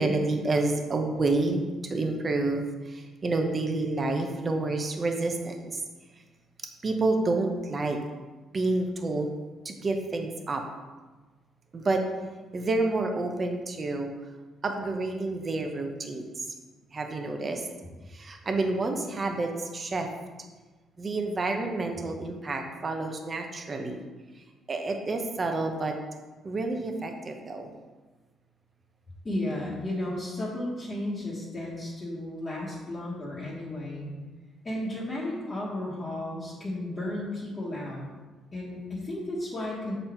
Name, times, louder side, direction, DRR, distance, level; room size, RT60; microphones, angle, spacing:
voice 1, 0.0-5.8 6.8-8.0 8.5-9.3 9.6-10.6 11.7-12.0 12.5-14.1 14.6-16.5 16.9-17.7 18.1-20.1 21.0-24.0 24.4-25.9 26.4-27.7, right 2 dB, 30° right, 4 dB, 0.9 m, -29 dB
voice 2, 29.2-34.1 34.6-38.0 38.5-39.9, left 1 dB, 25° left, -8 dB, 1.5 m, -33 dB
7.2 x 4.1 x 4.5 m, 1.3 s
cardioid pair, 120°, 0 cm